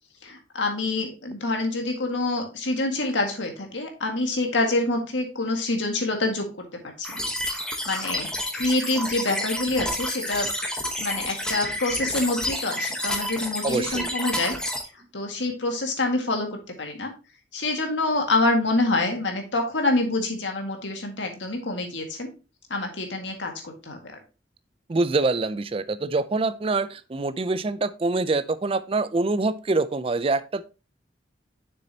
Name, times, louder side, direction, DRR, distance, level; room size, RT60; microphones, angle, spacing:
voice 1, 0.2-6.5 6.7-7.2 7.9-8.3 8.5-10.5 11.0-14.5 15.1-16.5 16.8-17.1 17.5-22.3 22.7-24.0, left 2 dB, 85° left, 1.8 m, -26 dB
sound 1, 7.0-14.8, left 1 dB, 5° left, 1.0 m, -30 dB
voice 2, 13.6-14.1 24.9-30.6, right 3 dB, 30° right, 0.4 m, -25 dB
6.9 x 6.5 x 2.8 m
head